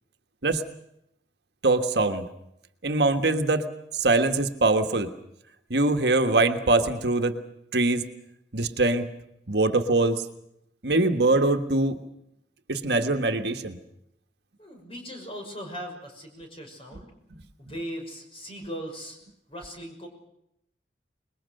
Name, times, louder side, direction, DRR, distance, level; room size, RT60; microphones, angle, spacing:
voice 1, 1.6-2.3 2.8-3.7 3.9-5.1 5.7-7.4 7.7-8.0 8.5-9.1 9.5-10.2 10.8-12.0 12.7-13.8, right 2 dB, 70° right, 6 dB, 1.5 m, -23 dB
voice 2, 14.6-17.1 17.6-19.2 19.5-20.1, equal, 30° left, 3 dB, 6.0 m, -39 dB
26.0 x 21.5 x 6.6 m, 0.80 s
head